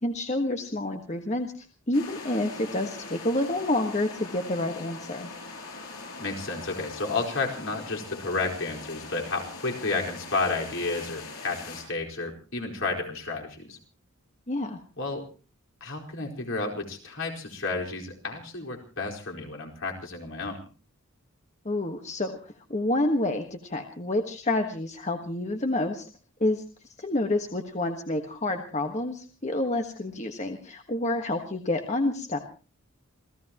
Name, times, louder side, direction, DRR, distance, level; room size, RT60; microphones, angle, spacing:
voice 1, 0.0-5.3 14.5-14.8 21.6-26.1 26.4-26.6 27.0-32.4, left 1 dB, 30° left, 5 dB, 1.4 m, -28 dB
sound 1, 1.9-11.8, left 3 dB, 85° left, 7.6 m, -42 dB
voice 2, 6.2-13.8 15.0-15.3 15.8-20.6, left 3 dB, 60° left, 0 dB, 4.6 m, -31 dB
28.0 x 16.5 x 3.0 m, 0.36 s
head